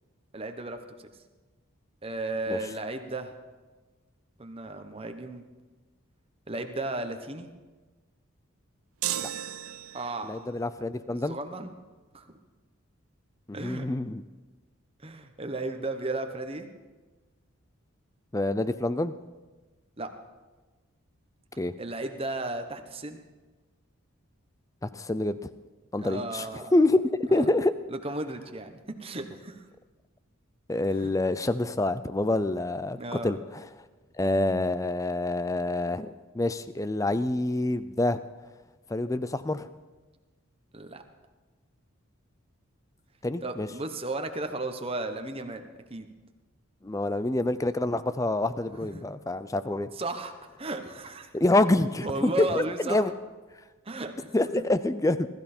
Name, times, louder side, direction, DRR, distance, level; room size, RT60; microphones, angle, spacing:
voice 1, 0.3-0.8 2.0-3.3 4.4-5.5 6.5-7.5 9.9-10.4 11.1-11.7 12.1-12.4 13.5-13.9 15.0-16.7 20.0-20.1 21.8-23.2 26.0-26.7 27.9-29.6 30.9-31.1 32.9-33.3 40.7-41.0 43.4-45.6 45.9-46.1 48.8-49.0 49.9-50.3 50.6-51.3 52.0-53.0 53.8-54.4, right 2 dB, 25° right, 6 dB, 1.0 m, -34 dB
sound 1, 9.0-10.3, right 11 dB, 90° right, 0.6 m, -34 dB
voice 2, 10.2-11.4 13.5-14.2 18.3-19.1 21.6-21.7 24.8-25.4 25.9-26.5 26.7-27.7 30.7-33.0 33.2-33.4 34.2-38.2 38.9-39.7 43.2-43.7 46.8-49.9 51.3-53.1 54.3-55.3, left 2 dB, 15° left, 13 dB, 0.4 m, -26 dB
21.0 x 13.0 x 4.4 m, 1.3 s
head